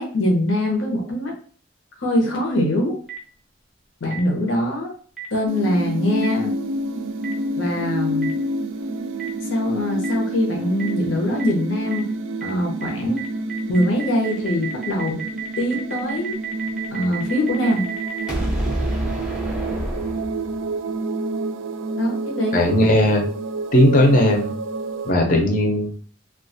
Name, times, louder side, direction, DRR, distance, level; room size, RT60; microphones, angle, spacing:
voice 1, 0.0-1.3 2.0-2.9 4.0-4.9 5.3-6.5 7.6-8.3 9.5-12.1 12.4-13.2 13.7-15.2 15.6-16.4 16.9-17.9 22.0-22.6, left 1 dB, 85° left, 1 dB, 0.8 m, -23 dB
Boom, 3.1-3.2 4.1-4.2 5.2-5.3 6.2-6.3 7.2-7.3 8.2-8.3 9.2-9.3 10.0-10.1 10.8-10.9 11.4-11.5 11.9-12.0 12.4-12.5 12.8-12.9 13.2-20.7, right 3 dB, 5° right, 0.5 m, -29 dB
sound 1, 5.5-25.1, right 2 dB, 90° right, 0.3 m, -28 dB
voice 2, 22.5-23.2 23.7-24.5 25.0-25.9, left 1 dB, 45° left, 2 dB, 0.5 m, -17 dB
2.3 x 2.3 x 2.6 m, 0.43 s
head